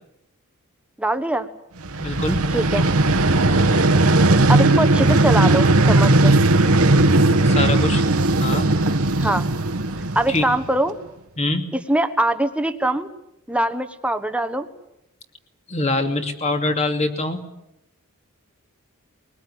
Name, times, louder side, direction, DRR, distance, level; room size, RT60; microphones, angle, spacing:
voice 1, 1.0-1.5 2.5-2.9 4.5-6.4 9.2-9.4 10.1-11.0 11.7-13.1 13.5-14.7, right 1 dB, 5° right, 9 dB, 1.4 m, -22 dB
Vehicle, 1.8-10.8, right 2 dB, 70° right, 1.5 m, -17 dB
voice 2, 2.0-2.4 7.4-8.0 8.4-8.7 10.3-10.5 11.4-11.7 15.7-17.4, left 2 dB, 30° left, 6 dB, 2.6 m, -24 dB
22.0 x 20.0 x 9.8 m, 0.83 s
head